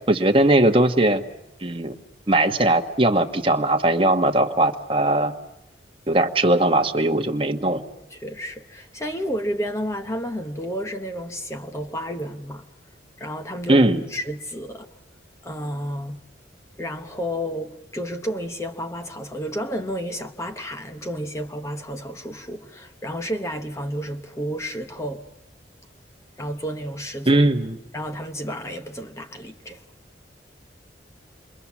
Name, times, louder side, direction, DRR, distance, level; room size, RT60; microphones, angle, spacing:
voice 1, 0.1-1.2 1.6-1.9 2.3-5.3 6.1-7.8 13.7-14.0 27.2-27.8, right 1 dB, 30° right, 1.3 m, -19 dB
voice 2, 8.1-12.6 13.2-13.8 14.1-14.9 15.4-16.2 16.8-25.2 26.4-27.4 27.9-29.8, equal, 15° left, 0.9 m, -31 dB
28.0 x 23.0 x 7.2 m
head